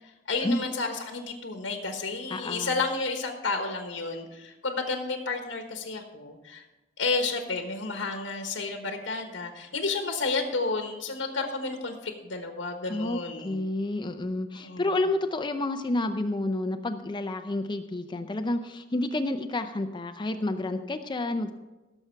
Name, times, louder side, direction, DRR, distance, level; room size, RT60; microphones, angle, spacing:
voice 1, 0.3-6.6 7.0-13.6 14.5-15.0, left 3 dB, 85° left, 4 dB, 1.3 m, -31 dB
voice 2, 2.3-2.7 12.9-21.5, left 2 dB, 25° left, 7 dB, 0.5 m, -30 dB
17.0 x 7.1 x 4.6 m, 1.1 s
head